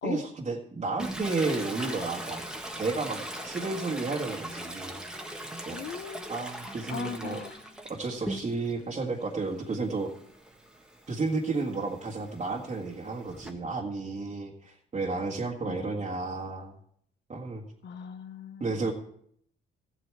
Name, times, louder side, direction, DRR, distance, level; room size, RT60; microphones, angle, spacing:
voice 1, 0.0-2.4 2.8-5.0 5.6-5.8 6.3-7.4 7.9-10.1 11.1-16.7 17.3-17.6 18.6-18.9, right 3 dB, 35° right, -3 dB, 1.7 m, -32 dB
Toilet flush, 1.0-8.8 9.2-13.5, right 1 dB, 5° right, 1.5 m, -40 dB
voice 2, 5.7-6.3 6.9-7.7 15.7-16.0 17.8-18.9, left 7 dB, 60° left, 11 dB, 0.8 m, -39 dB
15.0 x 8.0 x 4.7 m, 0.66 s
cardioid pair, 90°, 20 cm